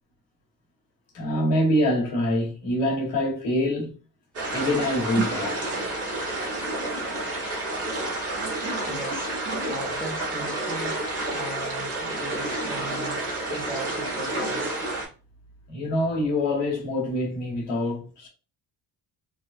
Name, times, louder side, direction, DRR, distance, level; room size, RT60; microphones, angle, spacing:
voice 1, 1.1-3.9 4.5-5.8 15.7-18.3, left 1 dB, 90° left, 1.4 m, -25 dB
sound 1, 4.3-15.1, right 2 dB, 35° right, 1.2 m, -29 dB
voice 2, 8.9-9.4 9.7-14.8, right 1 dB, 5° left, 0.5 m, -38 dB
3.3 x 2.2 x 2.5 m
cardioid pair, 145°, 42 cm